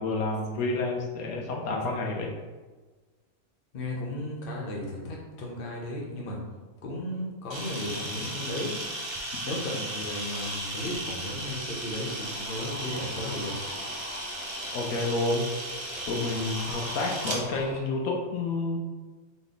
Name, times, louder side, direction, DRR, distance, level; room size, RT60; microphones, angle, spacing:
voice 1, 0.0-2.3 14.7-15.5 16.1-18.8, left 2 dB, 80° left, 0 dB, 1.2 m, -29 dB
voice 2, 3.7-6.4 6.8-8.7 9.2-13.5, left 1 dB, 45° left, -2 dB, 1.0 m, -35 dB
Camera, 7.5-17.4, right 1 dB, 30° right, 0.5 m, -35 dB
sound 1, 11.6-17.8, left 1 dB, 10° left, 0.6 m, -43 dB
4.0 x 3.4 x 3.9 m, 1.3 s
omnidirectional pair, 1.5 m